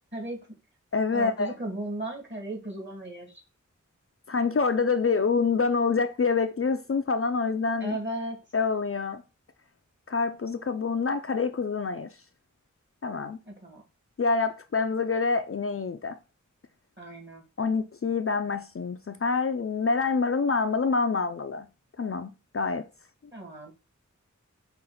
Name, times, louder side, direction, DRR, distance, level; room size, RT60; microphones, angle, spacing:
voice 1, 0.1-0.6 1.1-3.3 7.8-8.4 13.5-13.8 17.0-17.4 23.3-23.7, right 1 dB, 35° right, 1.8 m, -36 dB
voice 2, 0.9-1.5 4.3-8.0 8.5-9.2 10.1-12.1 13.0-13.4 14.2-16.2 17.6-21.7 22.0-22.8, left 4 dB, 45° left, 0.4 m, -26 dB
5.6 x 2.5 x 3.8 m
wide cardioid pair, 45°, 31 cm